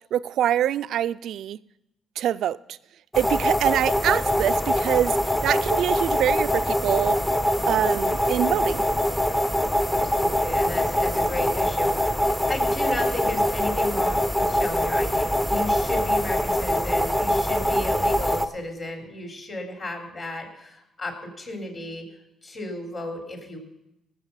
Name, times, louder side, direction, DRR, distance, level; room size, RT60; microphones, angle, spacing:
voice 1, 0.1-1.6 2.2-2.6 3.2-5.2 5.4-7.2 7.7-8.8, right 11 dB, 75° right, 0.3 m, -24 dB
sound 1, 3.1-18.5, left 1 dB, 10° left, 0.7 m, -23 dB
voice 2, 9.9-22.1 22.4-23.6, left 2 dB, 40° left, 3.4 m, -34 dB
18.0 x 7.2 x 5.6 m
cardioid pair, 90°, 0 cm